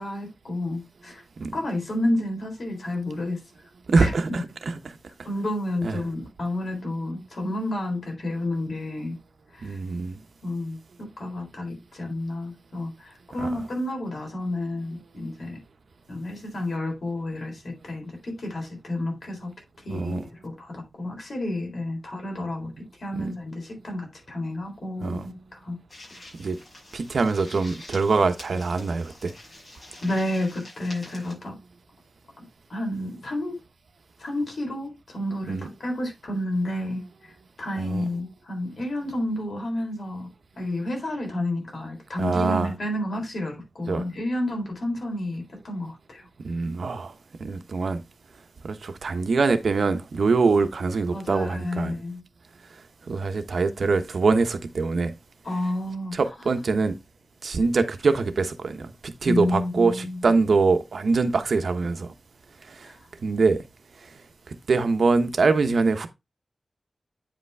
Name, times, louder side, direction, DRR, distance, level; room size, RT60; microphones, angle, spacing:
voice 1, 0.0-1.2 1.5-3.4 4.0-4.1 5.2-9.2 9.5-9.8 10.4-15.6 16.1-19.5 19.8-25.8 26.1-26.3 30.0-31.6 32.7-33.6 34.2-37.3 37.6-40.3 40.6-46.2 51.1-52.2 55.4-56.2 59.2-60.2 62.8-63.0, left 1 dB, 70° left, 3.9 m, -30 dB
voice 2, 3.9-4.7 5.8-6.0 9.6-10.1 13.4-13.5 19.9-20.2 23.1-23.3 25.0-25.3 26.4-26.6 26.9-29.3 35.5-35.7 37.8-38.0 42.2-42.7 43.9-44.0 46.4-47.1 47.4-48.0 48.6-52.0 53.1-55.1 56.1-57.0 57.4-62.1 63.2-63.6 64.7-66.1, right 4 dB, 80° right, 1.0 m, -23 dB
sound 1, 25.9-31.3, left 1 dB, 45° left, 5.9 m, -46 dB
9.1 x 5.2 x 3.4 m
wide cardioid pair, 120°, 0 cm